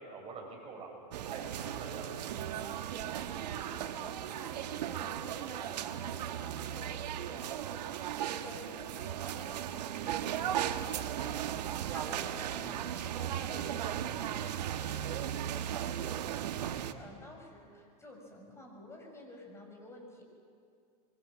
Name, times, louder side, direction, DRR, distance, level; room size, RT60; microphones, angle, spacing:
voice 1, 0.0-2.1, right 4 dB, 30° right, -1 dB, 7.4 m, -46 dB
sound 1, 1.1-16.9, right 10 dB, 80° right, 1.4 m, -36 dB
sound 2, 2.5-4.6 4.9-6.7 7.0-7.1 8.1-9.2 9.7-9.9 11.4-11.8, right 8 dB, 65° right, 7.3 m, -58 dB
voice 2, 2.9-20.2, left 1 dB, 15° left, 1 dB, 6.4 m, -51 dB
25.5 x 23.0 x 7.6 m, 2.3 s
supercardioid pair, 130°, 21 cm